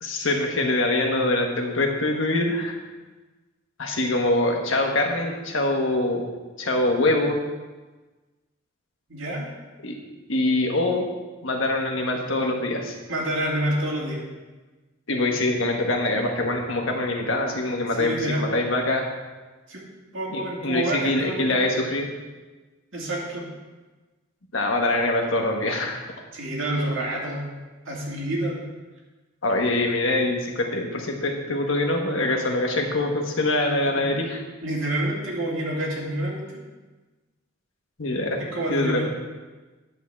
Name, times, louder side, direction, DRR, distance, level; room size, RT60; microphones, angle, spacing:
voice 1, 0.0-2.8 3.8-6.3 6.6-7.4 9.8-10.0 10.3-11.1 11.4-12.9 15.1-19.0 20.3-22.1 24.5-26.0 29.4-34.4 38.0-38.4 38.7-39.1, left 2 dB, 70° left, 2 dB, 1.4 m, -24 dB
voice 2, 9.1-9.5 13.1-14.2 17.9-18.4 19.7-21.6 22.9-23.5 26.3-27.4 27.9-28.6 34.0-34.1 34.6-36.6 38.5-39.1, right 1 dB, 70° right, -3 dB, 2.4 m, -28 dB
10.0 x 4.0 x 7.2 m, 1.2 s
head